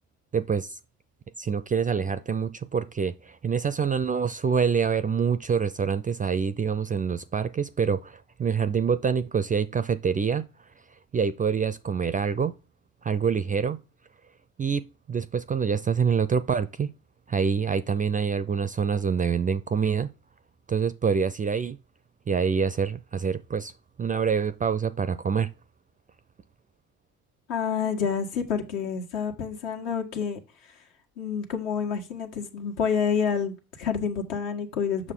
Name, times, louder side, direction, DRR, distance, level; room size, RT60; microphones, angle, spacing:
voice 1, 0.3-0.8 1.4-10.5 11.1-12.5 13.0-13.8 14.6-16.9 17.3-20.1 20.7-21.8 22.3-23.7 24.0-25.5, right 6 dB, 20° right, 0.4 m, -26 dB
voice 2, 27.5-30.4 31.2-35.1, left 6 dB, 70° left, 1.6 m, -28 dB
7.2 x 6.1 x 3.7 m
hypercardioid pair, 55°, 43 cm